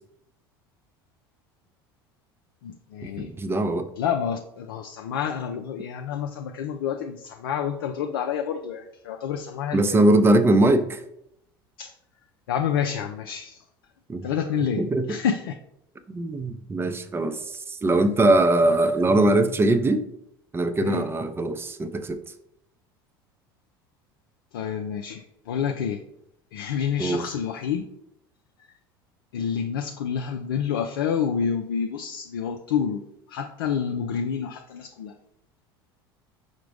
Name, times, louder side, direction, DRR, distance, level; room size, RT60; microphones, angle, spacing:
voice 1, 2.6-3.3 4.0-10.1 11.8-11.9 12.5-13.6 14.2-15.5 20.8-21.1 24.5-26.0 26.5-27.8 29.3-33.0 33.3-35.1, left 7 dB, 80° left, 4 dB, 0.4 m, -28 dB
voice 2, 3.2-3.9 9.7-11.0 14.1-14.3 14.8-15.2 16.1-20.0 20.5-22.2 27.0-27.2, right 2 dB, 20° right, 9 dB, 0.5 m, -21 dB
4.9 x 2.1 x 4.6 m, 0.78 s
hypercardioid pair, 75°, 12 cm